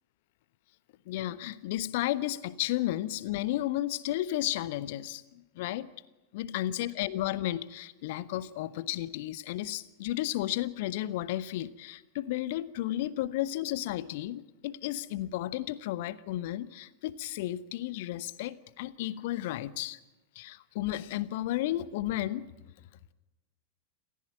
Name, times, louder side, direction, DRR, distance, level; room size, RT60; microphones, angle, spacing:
voice 1, 1.1-5.9 6.3-20.0 20.3-22.5, left 14 dB, 50° left, 17 dB, 1.0 m, -33 dB
28.5 x 15.0 x 9.0 m, 1.1 s
figure-of-eight pair, 90°, 0 cm